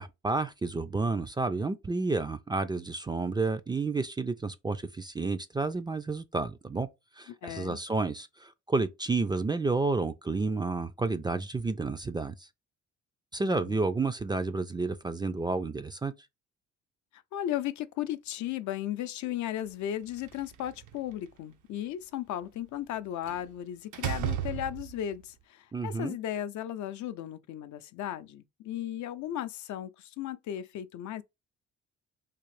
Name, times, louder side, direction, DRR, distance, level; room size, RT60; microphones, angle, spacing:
voice 1, 0.0-6.9 7.2-12.4 13.3-16.1 25.7-26.2, right 3 dB, 15° right, 0.3 m, -30 dB
voice 2, 7.3-7.8 13.4-13.8 17.1-31.2, left 11 dB, 70° left, 0.5 m, -36 dB
Slam, 20.1-21.1 23.3-23.5 23.9-25.1, right 10 dB, 75° right, 0.6 m, -34 dB
3.6 x 2.5 x 3.2 m
cardioid pair, 90°, 30 cm